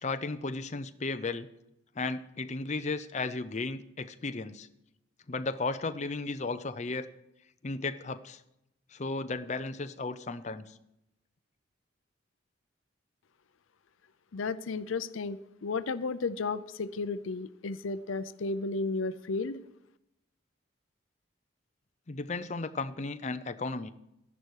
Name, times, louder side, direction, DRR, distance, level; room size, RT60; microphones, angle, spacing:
voice 1, 0.0-1.5 2.0-4.7 5.3-7.1 7.6-8.4 8.9-10.7 22.1-23.9, left 3 dB, 35° left, 11 dB, 0.6 m, -34 dB
voice 2, 14.3-19.6, left 3 dB, 80° left, 13 dB, 0.5 m, -33 dB
13.5 x 11.0 x 4.8 m, 0.86 s
head